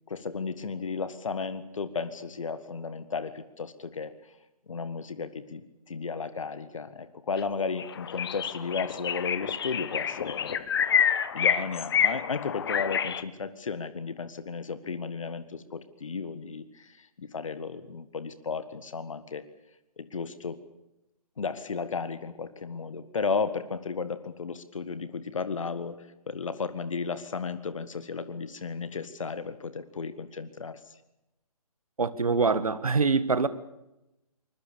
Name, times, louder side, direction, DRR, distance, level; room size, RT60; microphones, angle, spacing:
voice 1, 0.1-4.1 4.7-10.7 11.3-19.4 20.0-20.6 21.4-30.8, left 5 dB, 55° left, 1.7 m, -34 dB
sound 1, 7.4-7.5 7.8-13.2, left 8 dB, 40° left, 1.2 m, -28 dB
voice 2, 32.0-33.5, right 4 dB, 65° right, 1.7 m, -24 dB
24.0 x 21.5 x 7.1 m
figure-of-eight pair, 140°, 20 cm